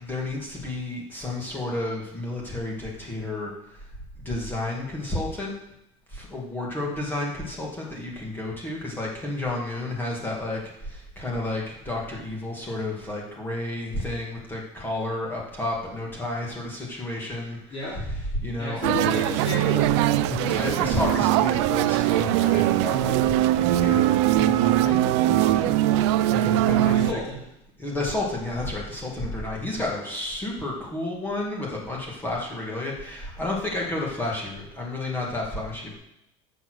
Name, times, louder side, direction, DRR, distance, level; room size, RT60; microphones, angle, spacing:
voice 1, 0.0-3.9 4.2-5.6 6.1-18.8 20.2-27.2 27.8-35.9, left 2 dB, 15° left, -3 dB, 2.3 m, -31 dB
voice 2, 17.7-18.0 18.6-20.0 26.7-27.4, left 2 dB, 35° left, -7 dB, 3.2 m, -32 dB
sound 1, 18.8-27.1, right 14 dB, 75° right, 0.5 m, -21 dB
8.8 x 6.6 x 6.4 m, 0.83 s
cardioid pair, 145°, 15 cm